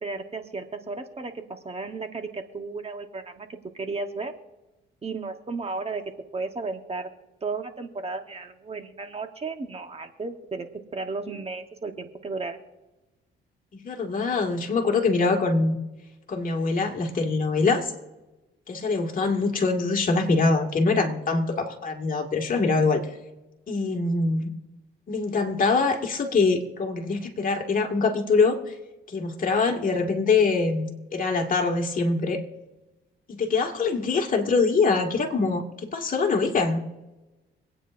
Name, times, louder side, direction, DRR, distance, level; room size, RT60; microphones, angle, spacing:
voice 1, 0.0-4.3 5.0-6.0 6.3-7.1 7.4-12.6, right 3 dB, 30° right, 6 dB, 1.2 m, -34 dB
voice 2, 13.8-15.8 16.3-17.9 18.7-23.0 23.7-24.5 25.1-28.7 29.1-32.4 33.3-36.9, left 4 dB, 45° left, 2 dB, 2.0 m, -24 dB
25.5 x 9.1 x 2.6 m, 1.0 s
cardioid pair, 90°, 20 cm